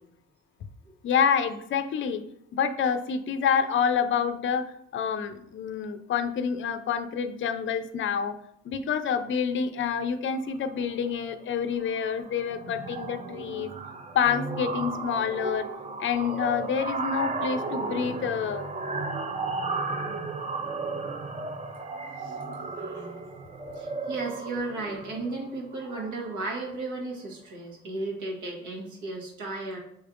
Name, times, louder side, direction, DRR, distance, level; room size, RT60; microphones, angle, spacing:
voice 1, 1.0-2.2 2.5-8.4 8.6-13.7 14.1-15.7 16.0-18.7, left 7 dB, 40° left, 10 dB, 0.4 m, -27 dB
sound 1, 10.6-10.9 11.2-11.5 11.8-26.7, right 3 dB, 25° right, 0.5 m, -35 dB
voice 2, 22.8-23.2 23.7-29.8, right 2 dB, 80° right, 0 dB, 1.4 m, -35 dB
6.3 x 3.4 x 2.5 m, 0.74 s
cardioid pair, 90°, 30 cm